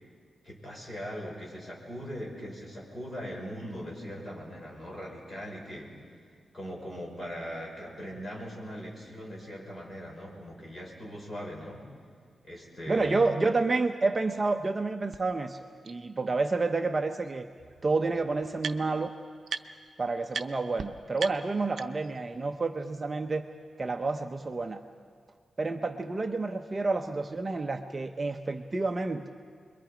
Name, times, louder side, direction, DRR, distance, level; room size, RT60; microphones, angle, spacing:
voice 1, 0.4-6.1 6.5-11.9 12.4-13.3, equal, 25° left, -3 dB, 5.8 m, -40 dB
voice 2, 12.9-15.6 15.8-17.5 17.8-19.1 20.0-23.4 23.8-24.8 25.6-29.3, right 3 dB, 30° right, 5 dB, 0.7 m, -29 dB
sound 1, 15.1-15.2 15.8-15.9 17.2-17.3 17.6-19.1 19.5-19.9 20.3-20.5 20.8-20.9 21.2-22.2, right 5 dB, 65° right, 0.7 m, -38 dB
29.5 x 22.5 x 5.1 m, 2.1 s
wide cardioid pair, 140°, 0 cm